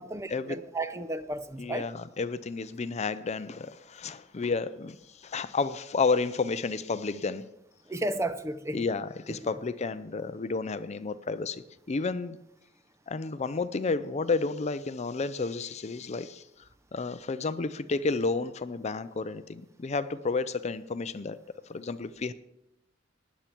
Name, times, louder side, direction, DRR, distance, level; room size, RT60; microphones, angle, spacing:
voice 1, 0.0-1.9 7.9-8.9, right 1 dB, 15° right, 0.6 m, -33 dB
voice 2, 1.6-5.0 5.2-7.5 8.7-12.4 13.1-16.4 16.9-21.4 21.7-22.3, left 4 dB, 35° left, 0.5 m, -31 dB
16.0 x 10.0 x 4.5 m
head